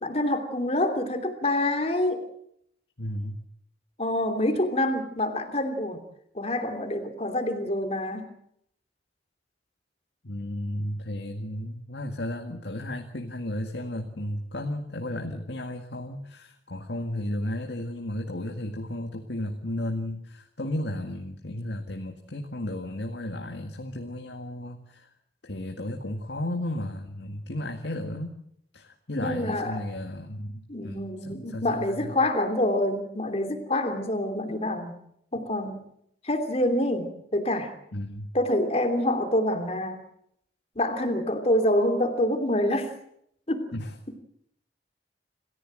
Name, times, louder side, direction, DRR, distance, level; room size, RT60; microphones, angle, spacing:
voice 1, 0.0-2.3 4.0-6.0 6.3-8.3 29.2-29.8 30.7-35.0 35.3-35.8 36.2-37.7 38.3-40.0 40.7-42.9 43.5-43.7, left 1 dB, 35° left, 7 dB, 3.0 m, -26 dB
voice 2, 3.0-3.4 10.2-25.1 25.4-28.3 28.7-32.2 37.9-38.3 43.7-43.9, left 1 dB, 75° left, 4 dB, 2.0 m, -34 dB
27.5 x 15.0 x 7.7 m, 0.72 s
head